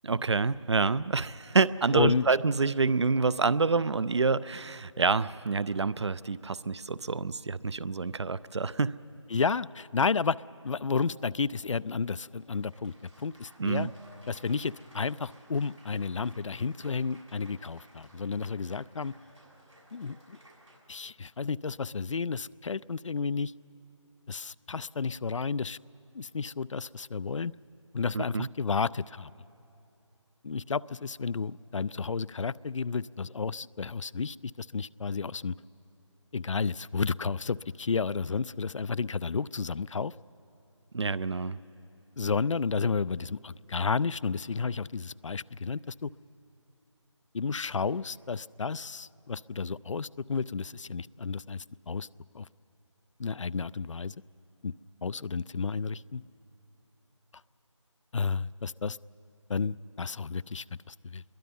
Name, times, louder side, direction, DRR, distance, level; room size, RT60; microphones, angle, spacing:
voice 1, 0.0-9.0 13.6-13.9 28.1-28.5 40.9-41.6, right 4 dB, 60° right, 19 dB, 0.5 m, -27 dB
voice 2, 1.9-2.2 9.3-10.4 10.6-13.9 14.3-19.1 19.9-20.4 20.9-23.5 24.3-25.8 26.1-27.5 27.9-29.3 30.4-35.5 36.3-40.1 42.2-46.1 47.3-52.1 52.3-52.5 53.2-54.1 54.6-54.7 55.0-56.2 58.1-59.0 59.5-61.2, left 5 dB, 75° left, 21 dB, 0.4 m, -32 dB
Applause, 10.9-20.8, right 1 dB, 85° right, 7.0 m, -58 dB
25.5 x 22.0 x 5.4 m, 2.9 s
figure-of-eight pair, 160°, 16 cm